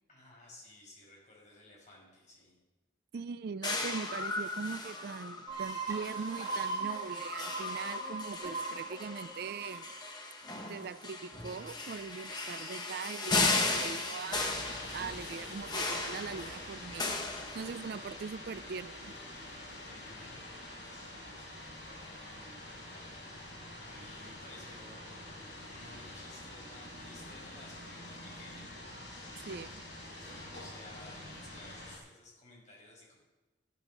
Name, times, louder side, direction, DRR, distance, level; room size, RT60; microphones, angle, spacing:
voice 1, 0.1-2.6 19.8-20.4 20.9-25.2 25.6-28.7 30.6-33.2, left 1 dB, 40° left, -3 dB, 5.9 m, -56 dB
voice 2, 3.1-9.9 10.7-17.2 17.5-19.1 29.4-29.8, right 5 dB, 55° right, 15 dB, 0.4 m, -41 dB
sound 1, 3.6-18.1, left 3 dB, 20° left, 1.3 m, -36 dB
sound 2, 5.5-10.9, right 4 dB, 20° right, 2.9 m, -39 dB
sound 3, 14.4-32.0, left 1 dB, 70° left, 5.3 m, -46 dB
13.5 x 9.1 x 6.6 m, 1.1 s
head